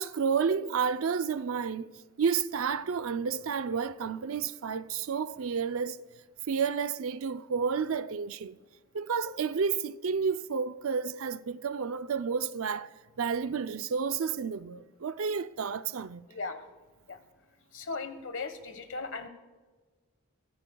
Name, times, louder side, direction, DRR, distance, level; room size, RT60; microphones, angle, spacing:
voice 1, 0.0-1.9 2.2-6.0 6.5-8.6 8.9-12.9 13.2-16.2, right 6 dB, 75° right, 0.5 m, -31 dB
voice 2, 16.3-16.7 17.0-17.3 17.7-19.3, left 4 dB, 60° left, 1.3 m, -38 dB
23.5 x 16.0 x 2.3 m
head